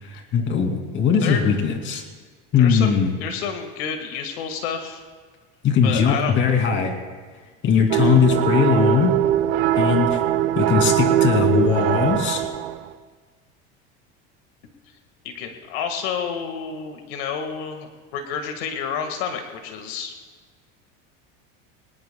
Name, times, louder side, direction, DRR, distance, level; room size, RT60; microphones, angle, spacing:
voice 1, 0.0-2.0 2.5-3.1 5.6-7.0 7.6-9.2 9.8-10.2 10.6-12.5, left 6 dB, 40° left, 4 dB, 2.6 m, -20 dB
voice 2, 2.6-5.0 5.8-6.3 15.2-20.1, left 7 dB, 90° left, 5 dB, 1.7 m, -29 dB
sound 1, 7.9-12.9, right 11 dB, 80° right, 1.0 m, -21 dB
24.0 x 19.5 x 2.2 m, 1.5 s
cardioid pair, 135°, 29 cm